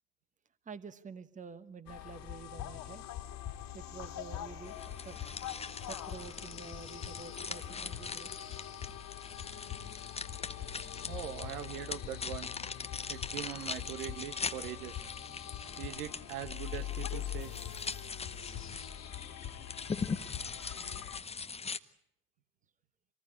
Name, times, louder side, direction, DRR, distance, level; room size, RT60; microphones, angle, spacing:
voice 1, 0.6-3.0 3.7-4.8 5.0-5.2 5.8-8.6, right 5 dB, 15° right, 13 dB, 1.2 m, -49 dB
sound 1, 1.9-21.2, left 11 dB, 45° left, 2.5 m, -43 dB
sound 2, 4.6-21.8, left 5 dB, 15° left, 0.9 m, -42 dB
voice 2, 11.1-12.5 13.1-15.1 15.8-17.7, right 11 dB, 65° right, 10 dB, 1.5 m, -42 dB
25.5 x 20.0 x 8.5 m, 0.77 s
figure-of-eight pair, 75°, 48 cm